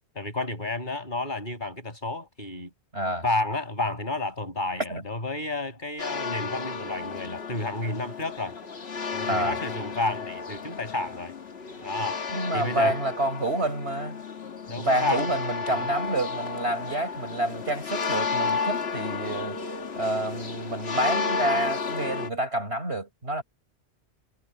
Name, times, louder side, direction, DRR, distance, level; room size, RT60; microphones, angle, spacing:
voice 1, 0.1-2.7 3.2-8.6 9.1-11.3 11.8-12.2 12.5-13.0 14.7-15.3 15.7-15.9, left 2 dB, 45° left, 6.8 m, -31 dB
voice 2, 2.9-3.2 4.9-5.0 9.3-9.6 12.3-14.2 14.8-19.6 20.0-23.4, right 1 dB, 65° right, 6.5 m, -28 dB
sound 1, 6.0-22.3, left 5 dB, 65° left, 1.7 m, -32 dB
omnidirectional pair, 1.2 m